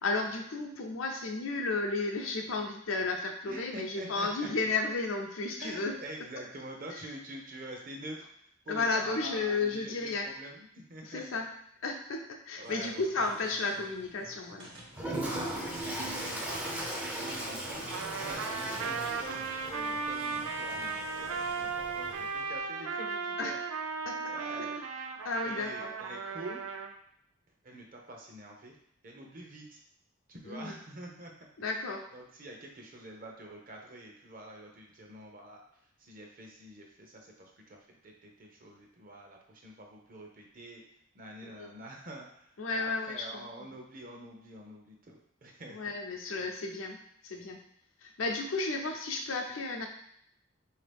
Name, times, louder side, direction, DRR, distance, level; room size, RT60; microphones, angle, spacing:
voice 1, 0.0-5.9 6.9-7.0 8.7-10.3 11.0-11.5 11.8-14.7 15.1-15.2 23.4-23.6 24.1-24.7 25.2-25.9 30.4-30.8 31.6-32.0 41.4-41.7 42.6-43.5 45.7-47.0 47.2-47.6 48.0-49.9, left 3 dB, 80° left, 2 dB, 0.6 m, -33 dB
voice 2, 3.5-4.5 5.6-8.3 8.7-10.6 10.9-11.4 12.6-13.0 15.1-17.9 18.1-23.6 24.3-24.7 25.4-26.6 27.6-28.7 29.0-29.8 30.3-31.3 31.6-31.7 32.1-35.6 36.0-40.8 41.1-45.8, right 1 dB, 45° right, 1 dB, 0.7 m, -46 dB
sound 1, 12.6-21.6, right 1 dB, 60° right, 1.1 m, -51 dB
Toilet flush, 14.9-22.4, right 1 dB, 5° right, 0.5 m, -38 dB
Trumpet, 17.9-26.9, right 4 dB, 85° right, 0.4 m, -36 dB
4.0 x 2.8 x 3.4 m, 0.71 s
head